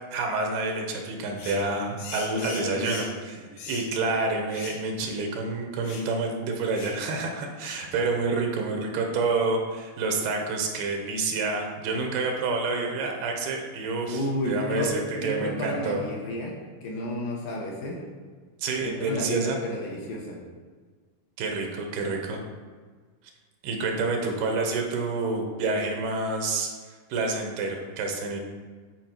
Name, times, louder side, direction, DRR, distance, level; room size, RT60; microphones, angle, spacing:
voice 1, 0.1-3.4 3.7-16.0 18.6-19.6 21.4-22.4 23.6-26.7 27.1-28.4, right 3 dB, 80° right, 2 dB, 2.9 m, -28 dB
sound 1, 1.4-1.7 2.0-3.2 3.6-3.9 4.5-4.8 5.1-5.2 5.8-6.1 6.7-7.0 7.6-7.9, left 4 dB, 90° left, 3.2 m, -40 dB
voice 2, 2.3-2.9 3.4-3.5 14.1-18.1 18.8-20.4, equal, 70° left, -2 dB, 2.5 m, -31 dB
9.5 x 4.9 x 4.5 m, 1.5 s
omnidirectional pair, 4.5 m